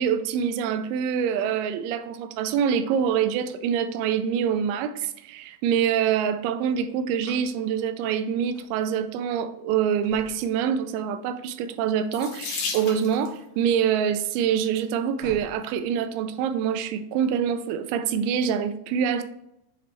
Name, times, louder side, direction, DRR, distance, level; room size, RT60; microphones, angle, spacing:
voice 1, 0.0-19.2, right 8 dB, 85° right, 9 dB, 2.8 m, -25 dB
sound 1, 7.2-7.5 7.8-8.7 9.3-9.4 10.0-11.1 12.6-13.0 13.4-13.8 14.0-14.1 14.8-14.9 15.2-16.4, left 1 dB, 45° left, 2.3 m, -47 dB
Water tap faucet / Sink (filling or washing), 12.1-13.4 14.4-14.8 15.5-15.6 15.9-16.0, left 5 dB, 70° left, 2.3 m, -34 dB
7.9 x 4.1 x 3.2 m, 0.81 s
omnidirectional pair, 5.5 m